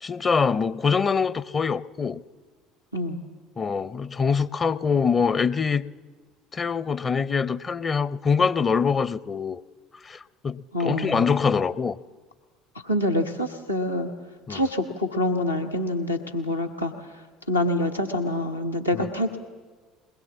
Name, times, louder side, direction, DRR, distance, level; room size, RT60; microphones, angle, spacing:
voice 1, 0.0-2.2 3.6-5.8 6.5-9.6 10.0-12.0 14.5-14.6 18.9-19.1, left 5 dB, 30° left, 18 dB, 0.6 m, -24 dB
voice 2, 2.9-3.2 10.7-11.3 12.8-14.1 14.5-17.1 17.5-19.4, left 1 dB, 85° left, 2 dB, 1.2 m, -26 dB
22.0 x 21.0 x 7.4 m, 1.4 s
figure-of-eight pair, 60°, 0 cm